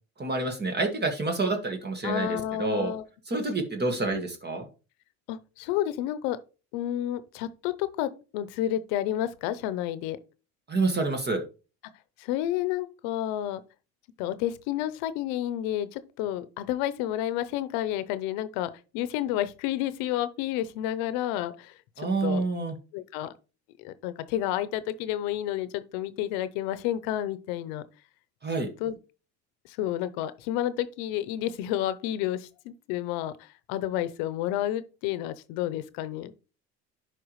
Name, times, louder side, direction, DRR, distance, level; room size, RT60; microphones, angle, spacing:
voice 1, 0.2-2.9 3.3-4.7 10.7-11.4 22.0-22.7 28.4-28.7, right 3 dB, 30° right, 1.7 m, -28 dB
voice 2, 2.0-3.0 3.3-3.4 4.1-4.2 5.3-6.4 6.7-10.2 12.2-13.6 14.2-22.4 22.9-23.3 23.8-27.8 28.8-29.0 29.7-36.3, left 12 dB, 90° left, 0.8 m, -30 dB
11.0 x 4.8 x 3.1 m
cardioid pair, 100°, 35 cm